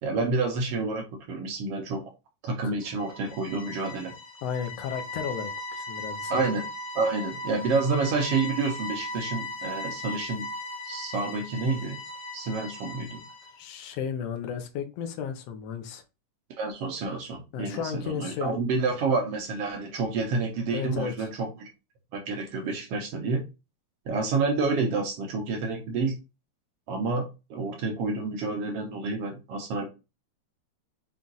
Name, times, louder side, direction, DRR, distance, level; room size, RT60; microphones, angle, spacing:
voice 1, 0.0-2.0 2.4-4.1 6.3-6.6 6.9-10.5 10.8-12.0 12.3-13.2 16.6-21.7 22.1-23.4 24.1-26.2 26.9-29.9, right 3 dB, 70° right, 2 dB, 1.5 m, -29 dB
sound 1, 2.8-13.6, left 2 dB, 50° left, 1.4 m, -38 dB
voice 2, 4.4-6.4 12.9-13.0 13.6-16.0 17.5-19.0 20.7-21.3, left 7 dB, 75° left, 6 dB, 1.5 m, -34 dB
5.7 x 2.4 x 3.9 m, 0.27 s
omnidirectional pair, 3.7 m